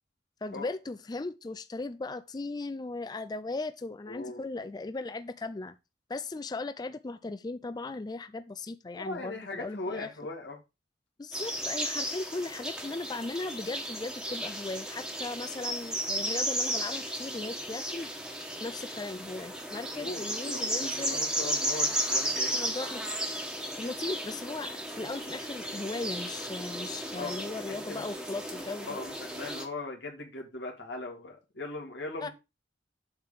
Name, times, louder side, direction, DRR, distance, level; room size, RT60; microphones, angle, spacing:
voice 1, 0.4-5.7 6.1-10.1 11.2-18.1 18.6-21.2 22.5-23.2 23.8-28.9 32.2-32.3, left 3 dB, 25° left, 0.4 m, -37 dB
voice 2, 4.1-4.4 9.0-10.6 19.9-22.7 27.1-28.0 28.5-32.3, left 2 dB, 85° left, 2.2 m, -39 dB
sound 1, 11.3-29.7, right 1 dB, 5° right, 1.5 m, -34 dB
7.9 x 3.7 x 6.7 m
head